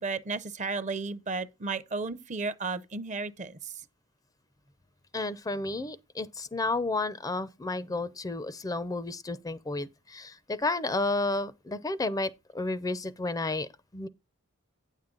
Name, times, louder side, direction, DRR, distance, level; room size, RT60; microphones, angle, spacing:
voice 1, 0.0-3.7, right 4 dB, 35° right, 0.6 m, -33 dB
voice 2, 5.1-14.1, left 2 dB, 15° left, 0.4 m, -32 dB
9.2 x 7.3 x 3.8 m
head